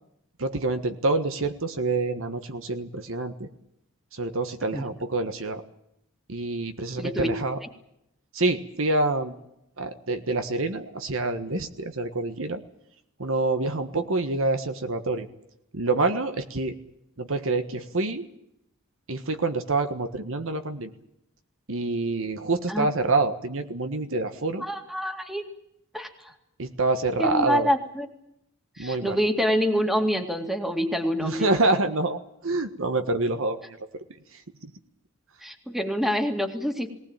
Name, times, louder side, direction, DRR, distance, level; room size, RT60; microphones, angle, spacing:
voice 1, 0.4-3.5 4.1-5.6 6.3-7.6 8.3-9.3 9.8-12.6 13.2-15.3 15.7-16.7 17.2-18.3 19.1-20.9 21.7-24.7 26.6-27.7 28.8-29.2 31.2-33.8 34.6-34.7, right 2 dB, 65° right, 8 dB, 1.5 m, -27 dB
voice 2, 7.0-7.3 22.7-22.9 24.6-25.4 25.9-26.3 27.2-28.1 28.8-31.5 35.4-36.9, equal, ahead, 5 dB, 2.2 m, -26 dB
19.5 x 19.0 x 8.9 m, 0.81 s
head